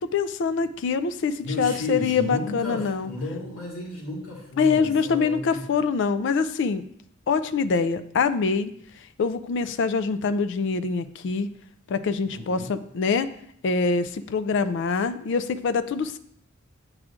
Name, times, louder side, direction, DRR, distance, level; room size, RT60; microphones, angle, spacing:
voice 1, 0.0-3.1 4.6-6.8 7.3-8.7 9.2-11.5 11.9-13.3 13.6-16.2, left 5 dB, 55° left, 12 dB, 0.3 m, -24 dB
voice 2, 1.4-5.6 12.3-12.7, left 1 dB, 80° left, -3 dB, 1.9 m, -33 dB
8.6 x 4.7 x 2.5 m, 0.69 s
head